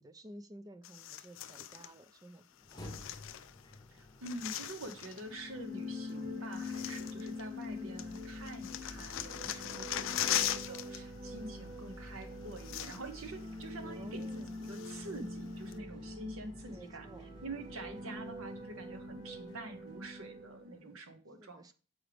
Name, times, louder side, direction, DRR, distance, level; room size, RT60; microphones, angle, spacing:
voice 1, 0.0-2.4 7.5-8.1 13.9-14.5 16.7-17.3 21.4-21.7, equal, 15° right, 0.3 m, -52 dB
sound 1, 0.8-1.9 2.7-3.8 4.0-5.3 6.1-6.2 6.5-7.7 8.0-11.0 11.3-11.5 12.2-12.3 12.5-13.3 13.6-13.7 14.2-15.2 15.7-15.8, left 11 dB, 65° left, 0.4 m, -39 dB
sound 2, 2.5-20.7, left 1 dB, 20° left, 0.7 m, -54 dB
voice 2, 3.9-21.7, right 2 dB, 75° right, 0.9 m, -46 dB
sound 3, 5.2-20.9, left 2 dB, 45° right, 2.7 m, -45 dB
7.3 x 4.9 x 3.3 m
head